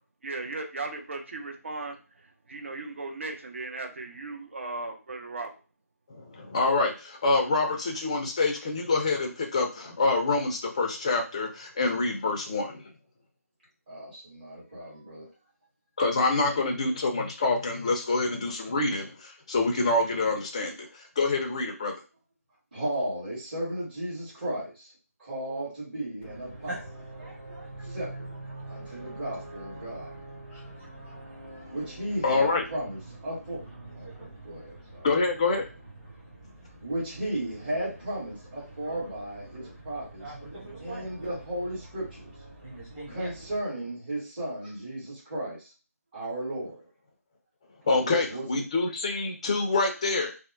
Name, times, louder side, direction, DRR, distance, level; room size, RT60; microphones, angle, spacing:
voice 1, 0.2-5.5, right 3 dB, 50° right, 4 dB, 0.6 m, -37 dB
voice 2, 6.1-12.8 16.0-22.0 32.2-32.6 35.0-35.7 47.9-50.3, left 3 dB, 25° left, 2 dB, 0.4 m, -26 dB
voice 3, 13.9-15.3 22.7-24.9 25.2-26.8 27.8-28.3 28.7-30.1 31.7-33.6 33.9-35.1 36.8-40.3 40.8-42.3 43.1-45.7 46.1-46.8 48.0-48.6, right 1 dB, 35° right, -8 dB, 1.4 m, -35 dB
sound 1, 26.2-43.6, right 2 dB, 10° right, 0.9 m, -44 dB
2.7 x 2.0 x 2.5 m, 0.33 s
figure-of-eight pair, 155°, 9 cm